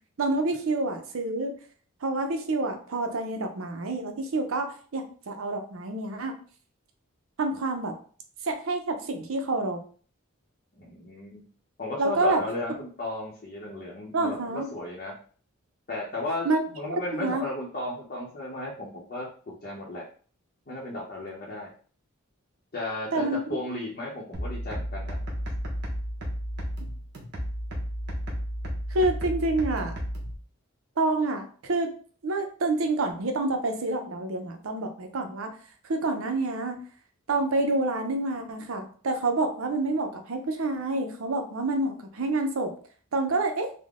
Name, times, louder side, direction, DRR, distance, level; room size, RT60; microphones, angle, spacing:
voice 1, 0.2-1.5 2.0-4.7 4.9-6.3 7.4-7.9 8.4-9.8 12.0-12.4 14.1-14.7 16.4-16.6 16.9-17.4 23.1-23.4 28.9-30.0 31.0-31.9 32.2-35.5 35.8-36.8 37.3-42.7 43.1-43.7, right 2 dB, 70° right, 5 dB, 0.6 m, -28 dB
voice 2, 10.8-11.4 11.8-15.1 15.9-20.0 20.7-21.7 22.7-25.2, left 2 dB, 40° left, -5 dB, 0.7 m, -35 dB
sound 1, 24.3-30.3, equal, 55° right, 1.1 m, -33 dB
3.6 x 2.1 x 3.6 m, 0.43 s
head